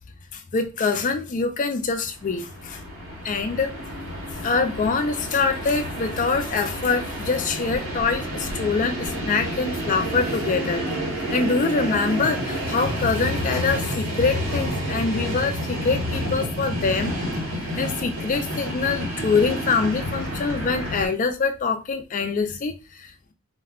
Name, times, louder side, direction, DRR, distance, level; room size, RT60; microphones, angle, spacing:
voice 1, 0.3-2.8 3.2-3.7 4.4-10.8 11.3-17.2 17.5-23.3, left 4 dB, 35° left, 0.3 m, -24 dB
Train, 2.1-21.1, equal, 80° right, 1.0 m, -29 dB
2.2 x 2.1 x 3.5 m
head